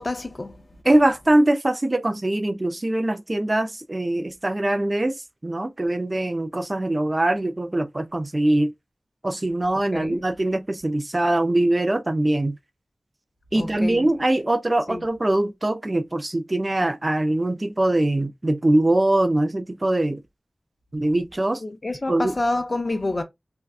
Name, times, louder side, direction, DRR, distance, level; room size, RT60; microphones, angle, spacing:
voice 1, 0.0-0.7 9.9-10.2 13.5-14.1 14.9-15.0 21.6-23.2, left 2 dB, 45° left, 0.5 m, -28 dB
voice 2, 0.9-8.7 9.2-12.6 13.5-20.2 20.9-21.6 22.1-22.3, right 1 dB, 35° right, 0.4 m, -22 dB
2.6 x 2.2 x 2.3 m
cardioid pair, 45°, 0 cm